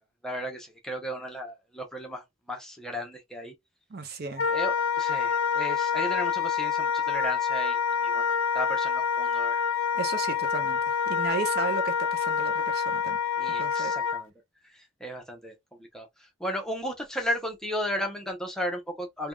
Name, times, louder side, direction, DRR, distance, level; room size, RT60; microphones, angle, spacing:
voice 1, 0.2-3.5 4.5-9.6 13.4-14.3 14.7-19.3, equal, 5° left, 0.6 m, -35 dB
voice 2, 3.9-4.5 10.0-13.2 13.6-13.9, right 4 dB, 45° right, 0.5 m, -34 dB
Wind instrument woodwind instrument, 4.4-14.2, left 6 dB, 65° left, 0.4 m, -27 dB
3.3 x 2.2 x 2.2 m
head